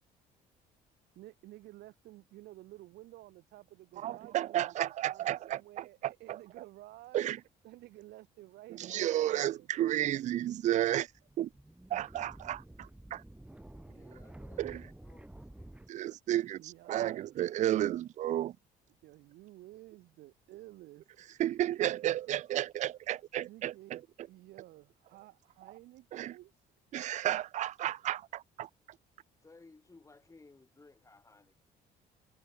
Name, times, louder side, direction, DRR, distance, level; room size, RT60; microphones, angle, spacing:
voice 1, 1.1-7.3 7.6-9.7 13.6-14.7 16.6-17.4 19.0-21.4 23.5-26.7, right 17 dB, 80° right, 6.0 m, -53 dB
voice 2, 4.0-6.1 7.1-7.4 8.9-11.1 11.4-11.5 11.9-13.2 14.6-14.8 15.9-16.6 16.9-18.5 21.4-24.0 26.1-26.3 26.9-28.7, right 13 dB, 45° right, 0.4 m, -32 dB
sound 1, 11.1-15.9, right 1 dB, 5° right, 2.6 m, -51 dB
voice 3, 13.7-15.7 29.4-31.7, left 3 dB, 20° left, 6.0 m, -59 dB
cardioid pair, 110°, 17 cm